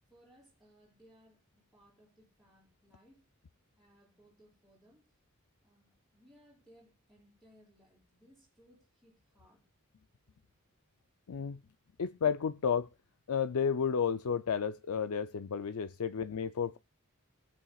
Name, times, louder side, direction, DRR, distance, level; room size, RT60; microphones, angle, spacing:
voice 1, 0.1-3.3 3.8-5.1 5.6-9.6 16.2-16.3, equal, ahead, 7.1 m, -64 dB
voice 2, 11.3-11.6 12.0-12.9 13.3-16.8, left 7 dB, 85° left, 0.5 m, -32 dB
23.0 x 8.5 x 2.4 m
head